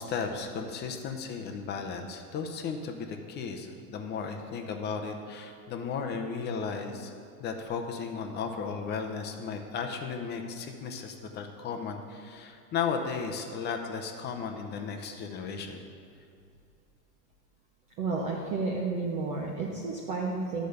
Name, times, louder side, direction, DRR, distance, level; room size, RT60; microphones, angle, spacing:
voice 1, 0.0-7.1 7.4-15.8, left 5 dB, 20° left, 4 dB, 0.6 m, -35 dB
voice 2, 18.0-20.7, right 3 dB, 15° right, -2 dB, 0.3 m, -31 dB
10.0 x 5.1 x 6.7 m, 2.4 s
hypercardioid pair, 130°, 49 cm